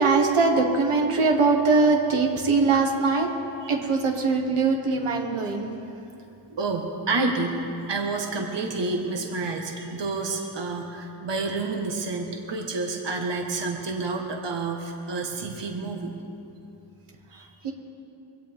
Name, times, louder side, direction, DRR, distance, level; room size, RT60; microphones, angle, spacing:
voice 1, 0.0-3.3 3.7-5.8 17.6-17.7, right 4 dB, 85° right, 1 dB, 1.9 m, -21 dB
voice 2, 6.6-16.1 17.3-17.5, right 3 dB, 60° right, 1 dB, 1.6 m, -29 dB
23.0 x 17.5 x 3.6 m, 2.8 s
wide cardioid pair, 110°, 49 cm